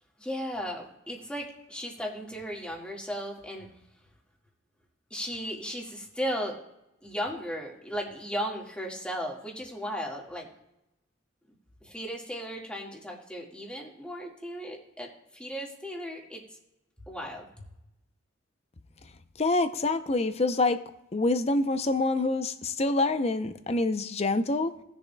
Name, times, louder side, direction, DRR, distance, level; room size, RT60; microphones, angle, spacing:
voice 1, 0.2-3.7 5.1-6.6 7.0-10.5 11.8-16.4 17.1-17.5, equal, 5° left, -1 dB, 1.7 m, -36 dB
voice 2, 19.4-20.8 21.1-24.7, left 2 dB, 30° left, 10 dB, 0.5 m, -26 dB
18.5 x 7.1 x 2.2 m, 0.88 s
head